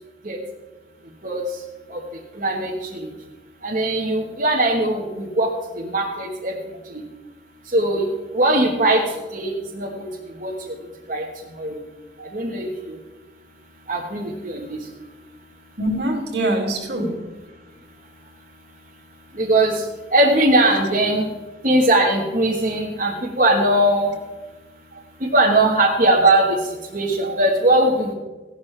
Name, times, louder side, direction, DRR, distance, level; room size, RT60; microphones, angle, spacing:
voice 1, 2.4-3.1 3.6-5.5 5.8-6.5 7.7-8.0 8.3-9.0 9.3-10.1 10.4-10.8 11.1-11.2 11.6-11.8 12.3-12.9 13.9-14.8 19.4-19.8 20.1-21.3 21.6-24.1 25.2-26.6 26.9-28.1, right 1 dB, 45° right, 1.4 m, -20 dB
voice 2, 15.8-17.3 24.9-25.0 27.2-27.4, right 1 dB, 75° right, 2.3 m, -25 dB
15.5 x 12.5 x 3.3 m
head